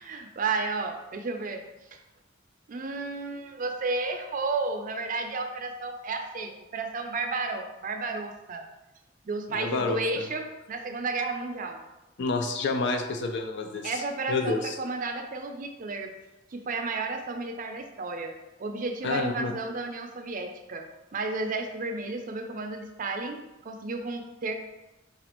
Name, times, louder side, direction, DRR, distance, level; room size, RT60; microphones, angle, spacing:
voice 1, 0.0-1.7 1.9-2.0 2.7-8.6 9.2-11.8 13.8-16.1 16.5-18.3 18.6-20.8 21.1-24.5, right 3 dB, 45° right, 5 dB, 0.4 m, -32 dB
voice 2, 9.5-10.0 12.2-13.9 14.3-14.8 19.0-19.5, left 3 dB, 65° left, 5 dB, 0.4 m, -28 dB
5.0 x 2.4 x 4.3 m, 1.0 s
head